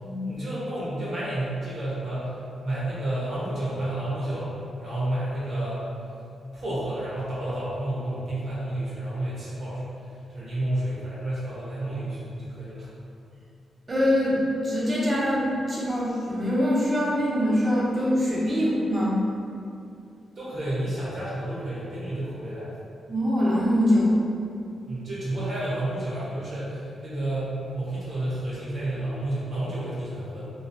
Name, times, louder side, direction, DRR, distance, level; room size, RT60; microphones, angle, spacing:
voice 1, 0.2-2.4 2.6-4.5 4.8-5.8 6.5-9.8 10.3-12.9 20.3-22.7 24.9-30.4, right 1 dB, 60° right, -9 dB, 1.3 m, -30 dB
voice 2, 13.9-19.2 23.1-24.2, equal, 30° right, -7 dB, 0.8 m, -23 dB
3.1 x 2.1 x 2.7 m, 2.5 s
cardioid pair, 80°, 0 cm